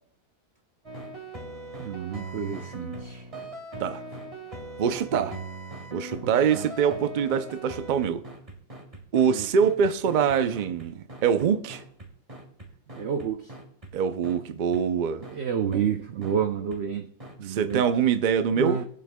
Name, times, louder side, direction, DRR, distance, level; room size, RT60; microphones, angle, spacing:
sound 1, 0.8-13.9 14.2-14.4 14.7-14.8 15.2-15.4 15.7-15.8 16.2-16.3 16.7-16.8 17.2-17.3 17.7-17.8, right 2 dB, 25° right, 1.8 m, -40 dB
voice 1, 1.8-3.3 5.1-5.3 6.2-6.7 9.2-9.5 13.0-13.5 15.3-17.1 17.4-17.9 18.5-18.8, right 8 dB, 60° right, 0.8 m, -30 dB
voice 2, 4.8-5.4 5.9-8.2 9.1-11.8 13.9-15.2 17.5-18.8, right 7 dB, 80° right, 0.4 m, -24 dB
21.0 x 7.7 x 2.2 m
omnidirectional pair, 1.5 m